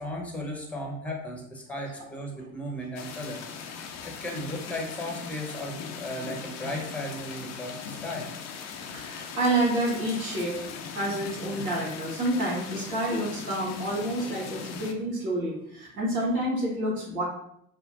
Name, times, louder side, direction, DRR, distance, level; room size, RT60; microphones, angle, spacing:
voice 1, 0.0-3.4 4.0-8.3, left 1 dB, 5° left, 0 dB, 0.9 m, -35 dB
sound 1, 3.0-14.9, left 6 dB, 40° left, 0.6 m, -40 dB
voice 2, 8.7-17.2, right 1 dB, 75° right, -3 dB, 1.3 m, -29 dB
5.7 x 2.2 x 2.6 m, 0.72 s
figure-of-eight pair, 65°, 43 cm